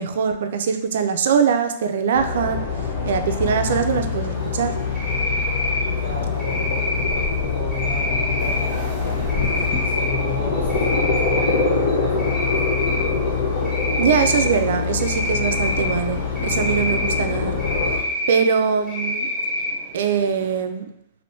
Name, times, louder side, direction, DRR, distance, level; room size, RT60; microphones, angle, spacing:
voice 1, 0.0-2.6 3.0-4.7 14.0-16.2 16.4-17.5 18.3-19.3 19.9-20.8, right 7 dB, 70° right, 7 dB, 0.3 m, -22 dB
sound 1, 2.1-18.0, left 5 dB, 60° left, 0.8 m, -24 dB
Cricket, 4.9-5.8 6.4-7.3 7.7-8.6 9.3-10.1 10.5-11.5 11.9-13.0 13.6-14.5 15.0-15.9 16.4-17.2 17.6-18.4 18.9-19.7, left 1 dB, 10° left, 1.0 m, -26 dB
voice 2, 5.9-6.6 7.0-9.4 9.8-12.9, right 1 dB, 85° left, -4 dB, 1.2 m, -36 dB
sound 2, 8.4-20.6, right 2 dB, 20° right, 0.8 m, -43 dB
3.4 x 2.5 x 2.6 m, 0.81 s
hypercardioid pair, 145°, 0 cm